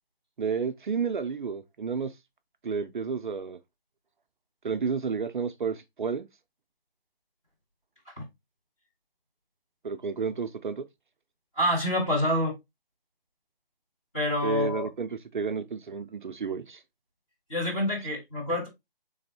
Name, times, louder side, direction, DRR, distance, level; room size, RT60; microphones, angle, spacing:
voice 1, 0.4-2.1 2.6-3.6 4.6-6.3 9.8-10.8 14.4-16.8, right 5 dB, 55° right, 0.5 m, -31 dB
voice 2, 11.6-12.5 14.1-14.9 17.5-18.7, left 1 dB, 5° left, 0.6 m, -27 dB
3.8 x 3.4 x 2.7 m
figure-of-eight pair, 160°, 30 cm